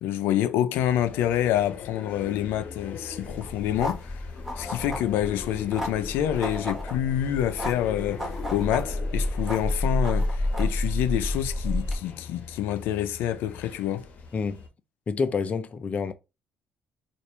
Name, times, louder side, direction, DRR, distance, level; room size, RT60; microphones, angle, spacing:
voice 1, 0.0-4.2 4.6-14.1, left 11 dB, 85° left, 0.5 m, -27 dB
sound 1, 0.7-14.7, left 5 dB, 55° left, 1.2 m, -41 dB
sound 2, 3.2-12.0, left 1 dB, 5° right, 1.7 m, -30 dB
voice 2, 15.1-16.1, left 5 dB, 40° left, 0.6 m, -28 dB
4.3 x 2.5 x 3.3 m
cardioid pair, 95°, 4 cm